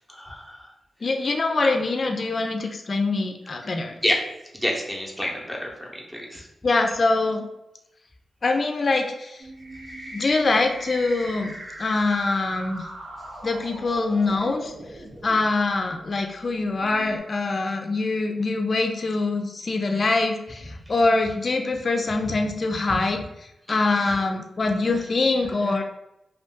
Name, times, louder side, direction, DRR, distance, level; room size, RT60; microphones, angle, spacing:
voice 1, 0.1-0.7 4.0-4.2 4.5-6.5 22.2-22.4 23.9-24.1, equal, 5° right, -2 dB, 0.8 m, -29 dB
voice 2, 1.0-4.0 6.6-7.5 8.4-9.4 10.1-12.9 13.4-14.7 15.2-23.2 23.7-25.8, left 3 dB, 55° left, 4 dB, 0.4 m, -24 dB
sound 1, 9.4-15.4 16.2-16.3 16.8-17.2, right 1 dB, 75° right, 0.9 m, -39 dB
2.5 x 2.3 x 3.5 m, 0.86 s
cardioid pair, 50°, 0 cm